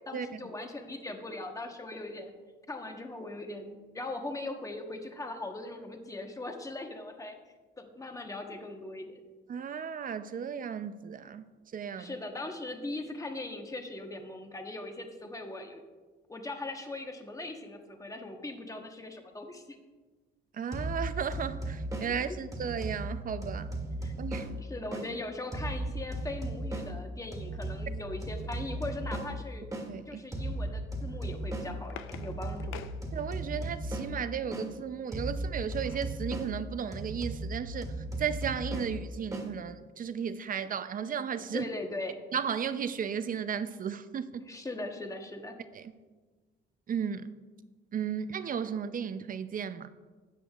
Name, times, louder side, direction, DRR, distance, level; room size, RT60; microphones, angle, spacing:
voice 1, 0.1-2.3 2.7-7.4 7.8-9.1 12.0-15.8 16.3-19.8 24.0-24.1 24.6-29.6 30.1-32.8 41.5-42.2 44.4-45.5, left 2 dB, 15° left, 1.1 m, -40 dB
voice 2, 9.5-12.2 20.5-23.7 24.2-24.5 29.9-30.2 33.1-37.9 38.2-41.7 42.3-44.4 45.7-45.9 46.9-47.3 47.9-49.9, right 7 dB, 45° right, 0.5 m, -35 dB
sound 1, 20.7-25.1 25.5-29.9 30.3-34.7 35.1-39.5, right 1 dB, 15° right, 1.7 m, -37 dB
sound 2, 31.3-33.7 35.3-36.2 36.7-36.8 37.0-37.3, left 9 dB, 85° left, 0.5 m, -48 dB
13.0 x 8.4 x 2.4 m
cardioid pair, 90°, 20 cm